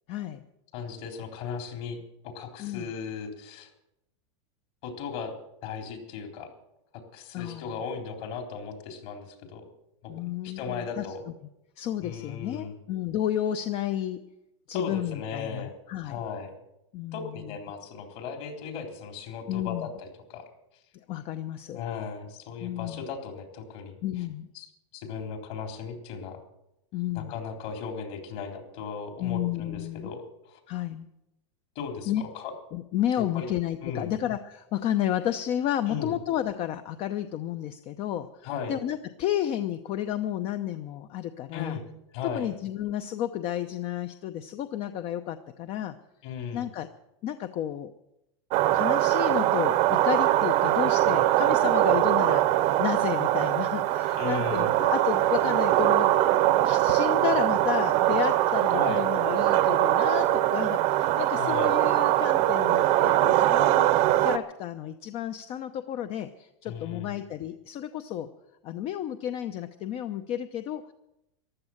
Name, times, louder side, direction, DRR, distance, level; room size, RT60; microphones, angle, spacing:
voice 1, 0.1-0.5 2.6-2.9 7.3-7.8 10.1-11.1 11.8-14.2 14.7-16.2 16.9-17.4 19.5-19.9 21.1-21.8 22.6-23.1 24.0-24.5 26.9-27.3 29.2-30.1 30.7-31.1 32.1-32.2 32.7-41.8 42.2-46.0 46.5-46.9 47.2-47.9 48.7-56.1 56.6-63.9 64.2-68.3 68.6-70.9, left 11 dB, 40° left, 10 dB, 0.8 m, -32 dB
voice 2, 0.7-2.0 2.2-3.7 4.8-5.3 5.6-6.5 7.1-9.7 10.0-11.2 12.0-12.7 14.7-15.7 16.0-16.5 17.1-20.5 21.7-24.2 24.5-26.4 27.1-30.6 31.8-32.5 33.2-33.5 33.8-34.1 35.9-36.2 38.4-38.8 41.5-41.8 42.1-42.5 46.2-46.7 54.2-54.7 58.7-59.0 61.3-61.7 66.7-67.1, left 6 dB, 55° left, 4 dB, 3.8 m, -37 dB
sound 1, 48.5-64.4, right 14 dB, 45° right, 0.9 m, -22 dB
14.5 x 12.0 x 7.3 m, 0.87 s
supercardioid pair, 130°, 16 cm